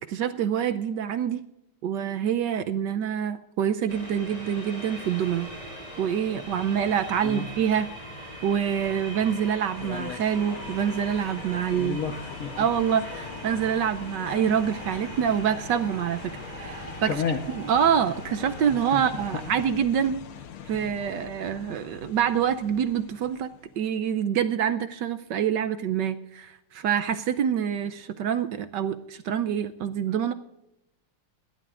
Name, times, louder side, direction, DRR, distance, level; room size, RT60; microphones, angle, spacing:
voice 1, 0.1-1.5 1.8-5.5 6.0-7.9 8.4-12.0 12.6-17.1 17.5-20.2 20.7-30.3, right 8 dB, 70° right, 10 dB, 1.1 m, -26 dB
sound 1, 3.9-19.7, equal, 15° left, 6.4 m, -41 dB
voice 2, 7.2-7.5 11.7-12.7 17.1-17.4 18.7-19.0, left 6 dB, 50° left, 7 dB, 1.2 m, -31 dB
sound 2, 9.7-24.0, left 8 dB, 90° left, 1.8 m, -43 dB
29.0 x 12.0 x 2.5 m, 0.88 s
omnidirectional pair, 2.3 m